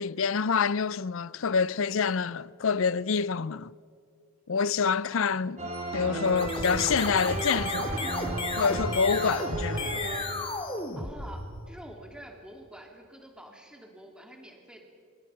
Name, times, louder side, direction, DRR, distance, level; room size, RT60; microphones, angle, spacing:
voice 1, 0.0-3.7 4.5-5.6 5.9-8.0 8.6-10.0, left 5 dB, 60° left, 0.5 m, -27 dB
voice 2, 5.1-5.4 11.0-14.9, right 1 dB, 5° right, 3.0 m, -47 dB
sound 1, 5.6-10.8, right 2 dB, 30° right, 3.3 m, -34 dB
sound 2, 6.3-11.7, left 2 dB, 25° left, 2.3 m, -33 dB
26.5 x 26.5 x 5.8 m
head